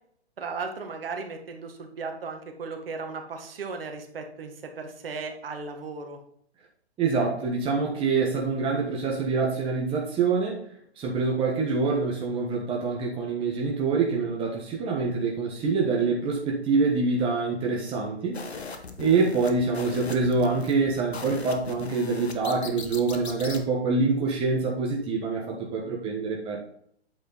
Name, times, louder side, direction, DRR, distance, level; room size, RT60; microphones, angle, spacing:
voice 1, 0.4-6.2, right 4 dB, 60° right, 4 dB, 1.8 m, -36 dB
voice 2, 7.0-10.6 11.0-18.4 19.0-26.6, right 4 dB, 15° right, -2 dB, 1.4 m, -25 dB
sound 1, 18.3-23.6, left 4 dB, 75° left, 1.3 m, -39 dB
8.3 x 5.2 x 4.1 m, 0.65 s
figure-of-eight pair, 125°, 33 cm